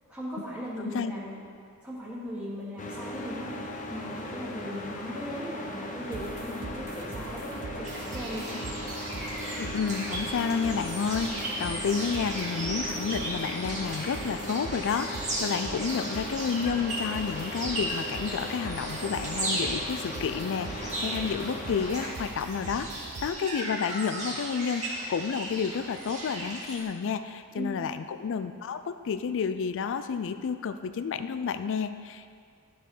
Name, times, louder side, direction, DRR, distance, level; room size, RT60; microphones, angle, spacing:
voice 1, 0.1-1.4 1.8-3.5 3.9-8.6 27.6-27.8, equal, 5° right, -12 dB, 1.6 m, -38 dB
voice 2, 0.8-1.1 9.6-32.4, left 6 dB, 60° left, 10 dB, 0.4 m, -30 dB
sound 1, 2.8-22.1, left 1 dB, 35° left, 0.7 m, -38 dB
sound 2, 6.1-23.3, right 4 dB, 75° right, 0.5 m, -43 dB
sound 3, 7.8-26.8, right 1 dB, 35° right, 1.8 m, -36 dB
12.0 x 4.7 x 4.0 m, 2.1 s
head